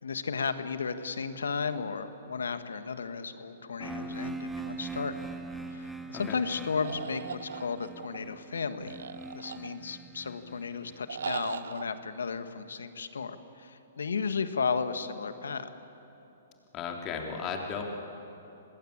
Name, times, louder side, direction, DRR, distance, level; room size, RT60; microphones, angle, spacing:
voice 1, 0.0-5.1 5.7-9.0 9.3-15.7, left 5 dB, 85° left, 10 dB, 1.5 m, -34 dB
sound 1, 3.8-11.6, right 3 dB, 5° right, 1.2 m, -42 dB
sound 2, 6.8-8.2 8.9-10.0 11.1-11.8, right 7 dB, 75° right, 0.9 m, -39 dB
voice 2, 16.7-17.8, left 6 dB, 30° left, 2 dB, 3.3 m, -35 dB
25.5 x 20.0 x 8.7 m, 3.0 s
hypercardioid pair, 135°, 0 cm